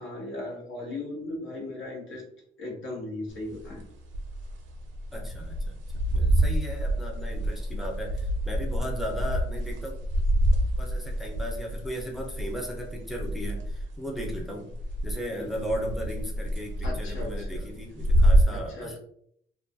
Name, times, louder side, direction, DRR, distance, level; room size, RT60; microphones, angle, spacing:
voice 1, 0.0-2.2 2.6-3.8 15.4-15.5 16.8-17.7 18.5-19.0, left 2 dB, 80° left, -2 dB, 1.0 m, -37 dB
sound 1, 3.4-14.5 14.7-15.2 15.5-18.5, equal, 70° right, 0.5 m, -27 dB
voice 2, 5.1-5.8 6.1-9.9 10.8-14.7 15.0-19.0, equal, ahead, 0 dB, 0.5 m, -36 dB
2.3 x 2.1 x 2.5 m, 0.67 s
cardioid pair, 90°, 20 cm